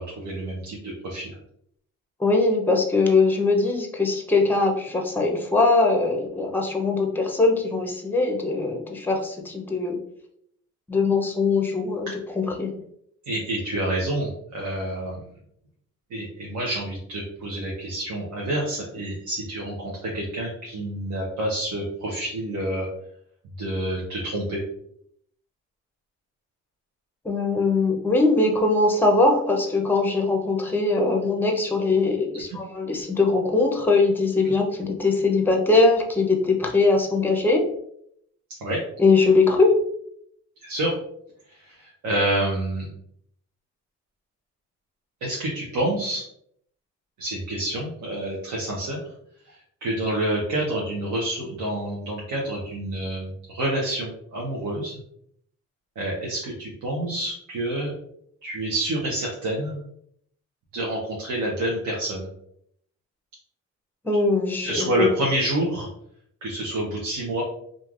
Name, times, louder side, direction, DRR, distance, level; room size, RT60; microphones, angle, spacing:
voice 1, 0.0-1.4 13.3-15.2 16.1-19.7 20.0-22.9 23.6-24.6 34.4-34.5 38.6-38.8 40.6-40.9 41.5-42.9 45.2-46.2 47.2-49.0 49.5-54.9 56.0-57.9 58.4-59.8 60.7-62.3 64.6-65.9 66.4-67.4, right 1 dB, 70° right, -3 dB, 0.9 m, -28 dB
voice 2, 2.2-10.0 10.9-12.1 12.4-12.7 27.2-37.7 39.0-39.8 64.0-65.1, left 3 dB, 5° left, 2 dB, 0.6 m, -21 dB
3.1 x 2.5 x 2.4 m, 0.70 s
cardioid pair, 90°, 30 cm